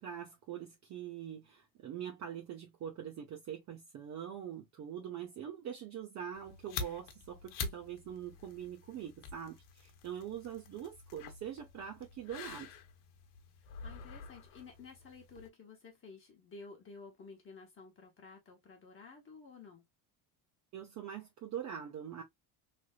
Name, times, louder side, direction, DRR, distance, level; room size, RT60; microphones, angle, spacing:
voice 1, 0.0-12.8 20.7-22.2, right 9 dB, 40° right, 0.8 m, -43 dB
sound 1, 6.3-15.5, left 5 dB, 70° left, 1.0 m, -47 dB
voice 2, 13.6-19.8, left 4 dB, 30° left, 1.0 m, -53 dB
3.4 x 2.6 x 2.4 m
cardioid pair, 140°, 43 cm